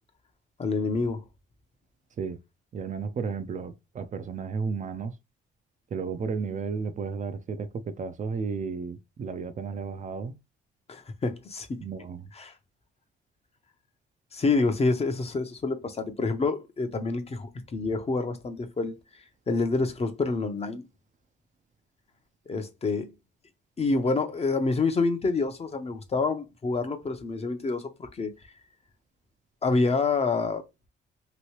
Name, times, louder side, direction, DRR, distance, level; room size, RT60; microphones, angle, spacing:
voice 1, 0.6-1.2 10.9-11.8 12.4-12.5 14.3-18.9 19.5-20.8 22.5-23.1 23.8-28.3 29.6-30.6, left 3 dB, 30° left, 0.7 m, -27 dB
voice 2, 2.7-5.2 5.9-10.4 11.8-12.3, right 5 dB, 40° right, 0.4 m, -33 dB
3.0 x 2.7 x 3.0 m
cardioid pair, 90°, 20 cm